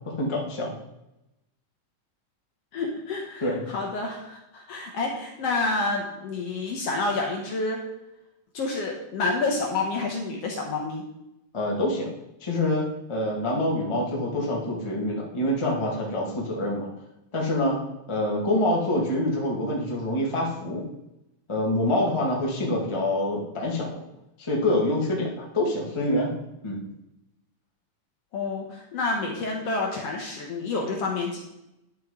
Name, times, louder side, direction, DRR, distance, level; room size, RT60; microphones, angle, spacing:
voice 1, 0.0-0.7 3.4-3.6 11.5-12.1 12.4-12.8 13.1-16.9 17.3-17.8 18.1-20.8 21.5-24.0 24.4-26.3 26.6-26.8, left 1 dB, 35° left, -3 dB, 0.4 m, -26 dB
voice 2, 2.7-7.8 8.5-11.0 28.3-31.4, left 3 dB, 65° left, 0 dB, 1.6 m, -29 dB
10.5 x 6.5 x 3.7 m, 0.90 s
omnidirectional pair, 3.8 m